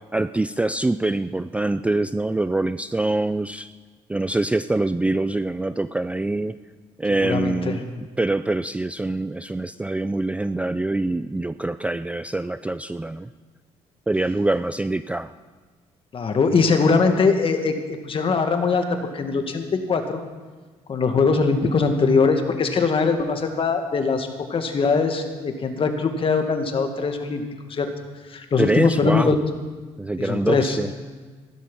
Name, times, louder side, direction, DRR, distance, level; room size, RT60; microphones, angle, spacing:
voice 1, 0.1-3.7 4.1-6.6 7.0-7.8 8.2-13.3 14.1-15.3 28.6-29.4 30.0-30.9, right 2 dB, 10° right, 13 dB, 0.4 m, -24 dB
voice 2, 7.2-7.8 16.1-20.2 20.9-27.4 27.7-27.9 28.3-29.3 30.2-30.8, left 4 dB, 40° left, 6 dB, 2.0 m, -21 dB
15.0 x 12.0 x 5.5 m, 1.4 s
supercardioid pair, 80°, 13 cm